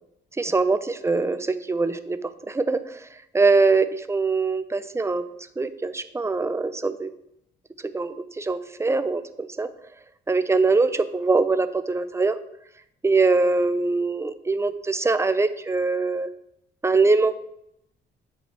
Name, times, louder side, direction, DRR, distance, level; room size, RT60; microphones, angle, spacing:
voice 1, 0.4-3.0 3.3-5.2 5.6-7.1 7.9-9.7 10.3-12.4 13.0-16.3 16.8-17.3, right 3 dB, 15° right, 11 dB, 0.6 m, -23 dB
8.0 x 5.5 x 4.4 m, 0.78 s
cardioid pair, 90°, 20 cm